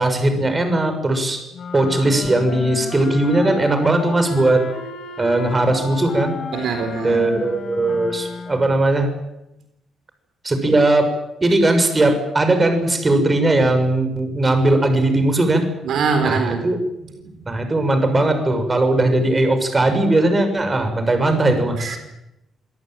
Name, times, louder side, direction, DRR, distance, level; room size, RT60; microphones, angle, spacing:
voice 1, 0.0-1.4 1.7-4.6 5.2-6.3 7.0-9.1 10.4-11.1 11.4-15.6 16.2-16.8 17.5-22.0, right 2 dB, 25° right, 7 dB, 6.5 m, -18 dB
sound 1, 1.5-8.9, left 5 dB, 65° left, 4.3 m, -33 dB
voice 2, 6.5-7.4 15.8-16.7 17.2-17.3 21.8-22.0, right 5 dB, 70° right, 6 dB, 4.0 m, -23 dB
26.0 x 18.5 x 9.2 m, 0.92 s
cardioid pair, 90°, 0 cm